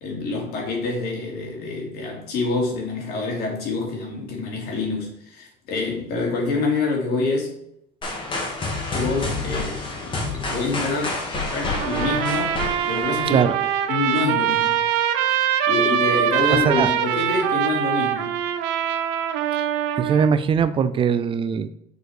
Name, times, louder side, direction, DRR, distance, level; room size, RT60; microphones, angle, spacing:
voice 1, 0.0-7.6 8.9-11.3 11.5-13.4 13.9-14.8 15.7-18.4, left 3 dB, 65° left, 2.5 m, -26 dB
sound 1, 8.0-13.9, left 2 dB, 30° left, 1.7 m, -29 dB
Trumpet, 11.7-20.3, right 10 dB, 85° right, 0.7 m, -23 dB
voice 2, 13.3-13.6 16.5-16.9 20.0-21.7, right 7 dB, 30° right, 0.4 m, -21 dB
6.5 x 4.6 x 4.8 m
cardioid pair, 155°, 18 cm